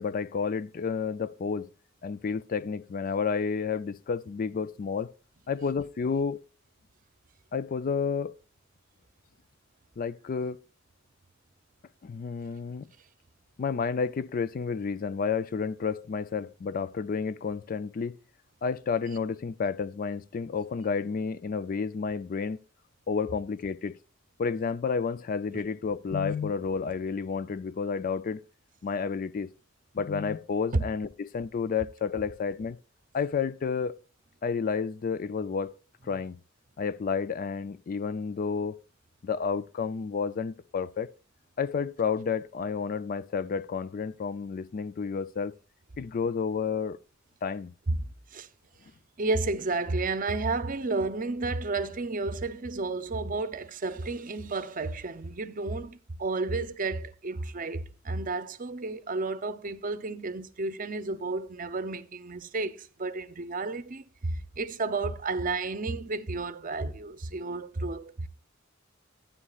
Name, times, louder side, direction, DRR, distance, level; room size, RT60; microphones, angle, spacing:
voice 1, 0.0-1.7 2.0-5.1 5.5-6.4 7.5-8.3 10.0-10.6 12.0-12.9 13.6-18.2 18.6-22.6 23.1-24.0 24.4-28.4 28.8-29.5 29.9-32.8 33.1-34.0 34.4-35.8 36.0-36.4 36.8-38.8 39.2-41.1 41.6-45.5 46.0-47.0 47.4-47.7, left 5 dB, 45° left, 0.4 m, -30 dB
voice 2, 47.9-48.5 49.2-68.3, right 3 dB, 45° right, 0.7 m, -32 dB
12.5 x 9.6 x 2.4 m
head